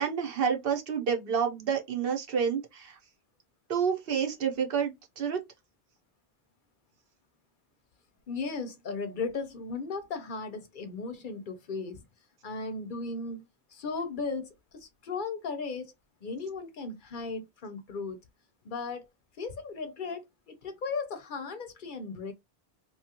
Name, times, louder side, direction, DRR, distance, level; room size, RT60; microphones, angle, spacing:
voice 1, 0.0-3.0 3.7-5.4, right 7 dB, 65° right, 0.9 m, -29 dB
voice 2, 8.3-12.0 12.4-15.9 16.2-18.2 18.6-19.0 19.4-22.3, left 4 dB, 55° left, 0.7 m, -36 dB
2.8 x 2.3 x 2.8 m
omnidirectional pair, 1.1 m